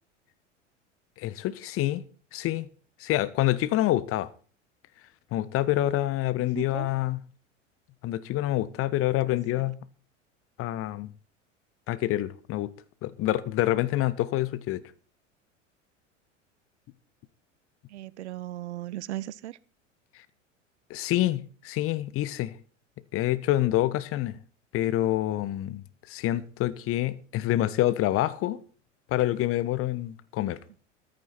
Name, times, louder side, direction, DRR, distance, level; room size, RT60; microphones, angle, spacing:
voice 1, 1.2-2.0 2.3-2.7 3.0-4.3 5.3-7.2 8.0-9.8 10.6-11.1 11.9-12.7 13.0-14.8 20.9-22.5 23.1-24.4 24.7-28.6 29.1-30.6, left 15 dB, 35° left, 1.2 m, -27 dB
voice 2, 6.5-6.9 9.5-9.7 17.9-19.6, right 14 dB, 60° right, 0.9 m, -37 dB
14.5 x 13.5 x 4.3 m
figure-of-eight pair, 80°, 37 cm